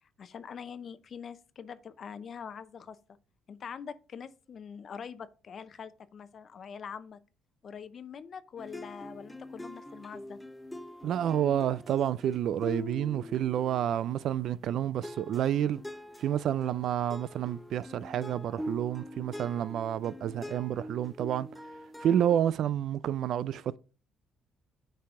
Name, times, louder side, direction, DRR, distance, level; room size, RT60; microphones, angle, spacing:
voice 1, 0.0-3.0 3.5-7.2 7.6-10.4, left 7 dB, 50° left, 0.7 m, -44 dB
sound 1, 8.6-14.7 15.0-22.5, left 1 dB, 5° left, 0.6 m, -44 dB
voice 2, 11.0-15.8 16.2-21.5 22.0-23.8, right 10 dB, 65° right, 0.4 m, -29 dB
9.3 x 4.7 x 3.7 m
supercardioid pair, 80°, 0 cm